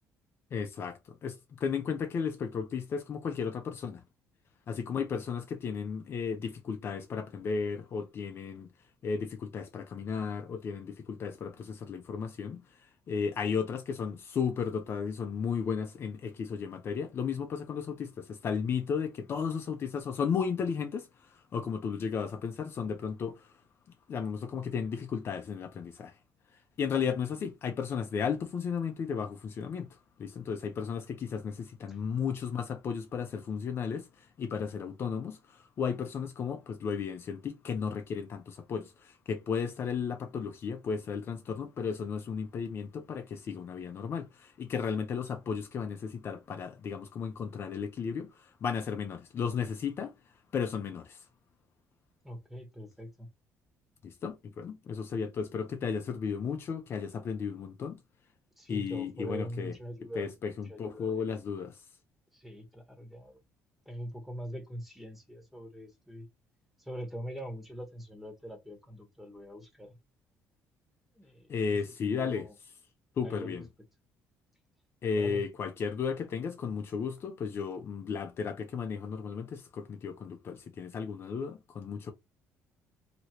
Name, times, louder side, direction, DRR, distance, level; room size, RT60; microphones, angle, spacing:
voice 1, 0.5-4.0 4.7-8.7 9.0-23.5 24.1-26.1 26.8-50.1 50.5-51.2 54.0-58.0 58.7-59.7 60.1-61.8 71.5-72.5 73.2-73.6 75.0-82.1, left 6 dB, 45° left, 0.6 m, -34 dB
voice 2, 52.2-53.3 58.6-60.3 60.7-61.3 62.3-63.4 63.8-66.3 66.8-69.9 71.1-71.8 72.1-72.5 73.2-73.6 75.1-75.4, equal, 5° right, 1.3 m, -43 dB
3.0 x 2.9 x 2.9 m
cardioid pair, 120°, 6 cm